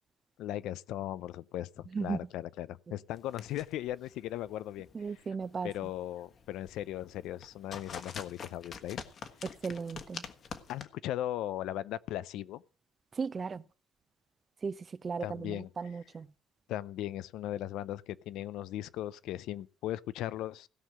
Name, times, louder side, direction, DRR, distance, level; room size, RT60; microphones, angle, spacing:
voice 1, 0.4-4.9 5.6-9.1 10.7-12.6 15.2-15.7 16.7-20.7, left 13 dB, 85° left, 0.6 m, -38 dB
sound 1, 3.1-10.8, left 6 dB, 50° left, 1.5 m, -47 dB
voice 2, 4.9-5.7 9.6-10.2 13.1-13.6 14.6-16.3, right 5 dB, 35° right, 0.7 m, -36 dB
16.5 x 5.6 x 7.5 m
cardioid pair, 115°, 0 cm